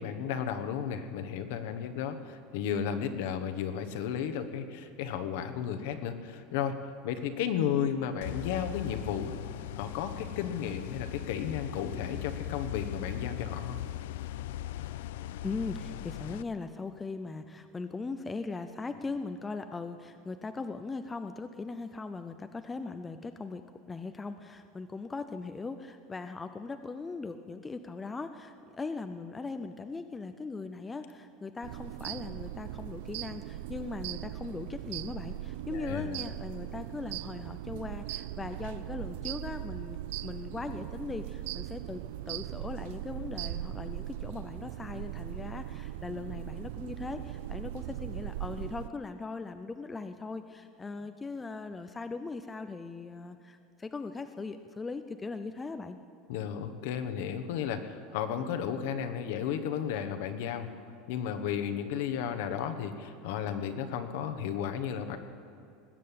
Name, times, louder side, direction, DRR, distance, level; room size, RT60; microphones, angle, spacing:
voice 1, 0.0-6.8 7.0-9.3 9.7-13.8 35.7-36.2 56.3-60.7 61.1-65.2, left 8 dB, 65° left, 8 dB, 1.2 m, -33 dB
sound 1, 8.2-16.4, left 13 dB, 90° left, 0.4 m, -39 dB
voice 2, 15.4-23.6 23.9-56.0, left 3 dB, 10° left, 8 dB, 0.4 m, -39 dB
sound 2, 31.6-48.9, right 14 dB, 70° right, 0.3 m, -39 dB
19.5 x 7.7 x 8.5 m, 2.5 s
supercardioid pair, 170°, 0 cm